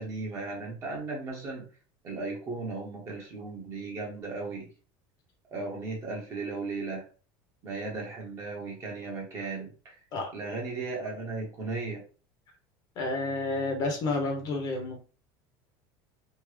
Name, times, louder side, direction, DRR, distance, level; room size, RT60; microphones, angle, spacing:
voice 1, 0.0-1.6 2.0-4.7 5.5-7.0 7.6-9.9 10.3-12.0, right 3 dB, 25° right, -2 dB, 1.3 m, -36 dB
voice 2, 12.9-15.0, left 2 dB, 40° left, 2 dB, 0.9 m, -30 dB
3.5 x 2.2 x 3.3 m, 0.36 s
cardioid pair, 165°, 10 cm